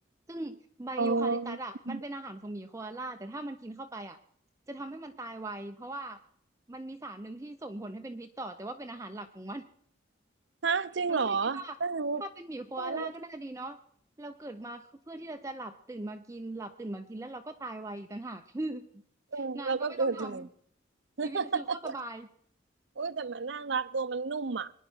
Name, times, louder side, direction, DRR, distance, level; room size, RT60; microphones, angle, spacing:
voice 1, 0.3-4.2 4.7-6.2 6.7-9.7 11.1-11.7 12.2-13.8 14.2-18.9 19.3-20.5 21.2-22.3, right 2 dB, 15° right, 0.5 m, -40 dB
voice 2, 1.0-1.6 1.9-2.0 10.6-12.2 12.8-13.1 19.3-20.5 21.2-21.9 23.0-24.7, right 4 dB, 70° right, 0.7 m, -31 dB
22.0 x 10.0 x 6.1 m
head